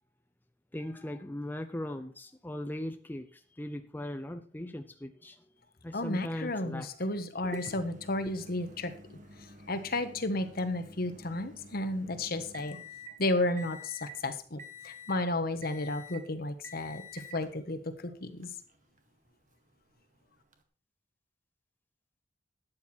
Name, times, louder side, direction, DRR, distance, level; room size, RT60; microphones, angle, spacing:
voice 1, 0.7-5.4 5.8-6.9 7.4-7.6 8.3-8.4, left 1 dB, 10° left, 0.6 m, -39 dB
voice 2, 5.9-9.2 9.7-12.8 13.2-18.5, left 2 dB, 55° left, 1.4 m, -33 dB
Microwave oven, 7.5-13.2 13.6-14.2 14.6-15.2 15.6-16.2 16.6-17.5 18.4-18.5 20.5-20.6, left 2 dB, 45° right, 1.7 m, -49 dB
13.0 x 9.6 x 4.5 m
head